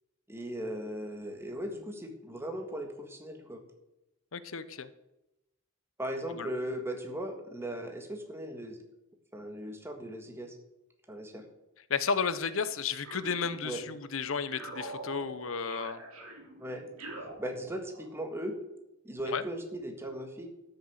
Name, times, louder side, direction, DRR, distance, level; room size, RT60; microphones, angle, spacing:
voice 1, 0.3-3.6 6.0-8.8 9.3-10.5 11.1-11.4 13.6-13.8 16.6-16.9 17.4-18.6 19.0-20.5, equal, 10° right, 4 dB, 1.7 m, -38 dB
voice 2, 4.3-4.9 6.4-6.5 11.9-16.0 19.3-19.4, left 5 dB, 75° left, 14 dB, 0.8 m, -33 dB
sound 1, 13.0-14.0 14.5-18.2, right 1 dB, 90° right, 3.2 m, -45 dB
13.0 x 6.8 x 7.9 m, 0.95 s
head